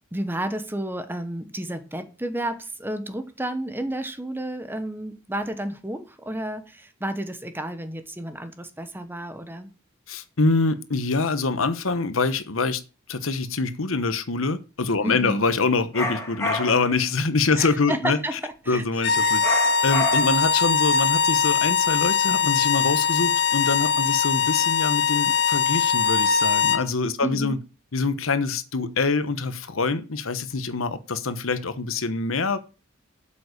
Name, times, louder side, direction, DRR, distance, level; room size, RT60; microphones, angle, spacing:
voice 1, 0.1-9.7 15.0-15.4 17.6-18.8 19.2-19.4 20.2-20.4 27.2-27.6, right 1 dB, 10° right, 1.1 m, -31 dB
voice 2, 10.1-12.8 13.1-18.4 18.7-19.4 19.8-27.6 27.9-32.6, left 3 dB, 85° left, 1.1 m, -25 dB
sound 1, 15.9-17.0 19.4-20.5, left 2 dB, 15° left, 2.9 m, -29 dB
sound 2, 19.0-26.9, left 6 dB, 55° left, 0.8 m, -21 dB
8.2 x 7.6 x 6.5 m
head